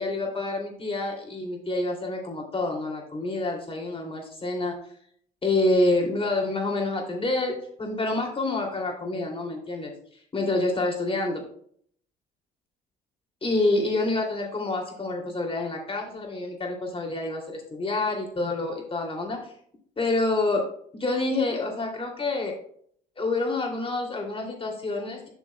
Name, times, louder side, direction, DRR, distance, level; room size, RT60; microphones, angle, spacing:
voice 1, 0.0-4.8 5.4-9.9 10.3-11.4 13.4-19.5 20.0-20.7 21.0-22.6 23.2-25.3, left 2 dB, 30° left, 1 dB, 2.7 m, -27 dB
11.5 x 6.2 x 2.2 m, 0.62 s
supercardioid pair, 75°, 19 cm